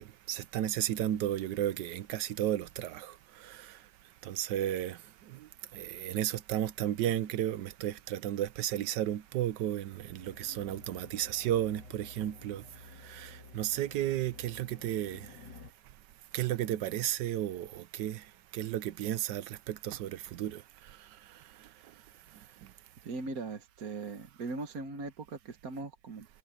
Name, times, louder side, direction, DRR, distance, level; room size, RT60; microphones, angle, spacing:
voice 1, 0.0-15.6 16.3-22.7, right 12 dB, 70° right, 1.3 m, -34 dB
sound 1, 10.2-15.7, left 3 dB, 65° left, 3.5 m, -52 dB
voice 2, 23.0-26.3, right 3 dB, 50° right, 1.7 m, -39 dB
omnidirectional pair, 2.0 m